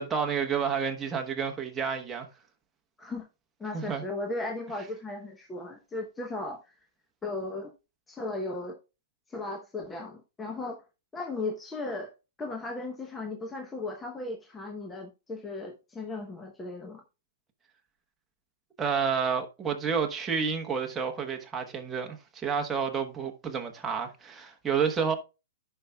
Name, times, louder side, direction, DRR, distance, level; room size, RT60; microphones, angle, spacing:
voice 1, 0.0-2.3 3.7-4.0 18.8-25.2, right 6 dB, 10° right, 1.1 m, -30 dB
voice 2, 3.6-6.7 7.2-7.7 8.1-8.8 9.3-10.8 11.1-12.1 12.4-17.0, left 2 dB, 10° left, 0.8 m, -36 dB
14.0 x 5.6 x 2.3 m
hypercardioid pair, 160°, 0 cm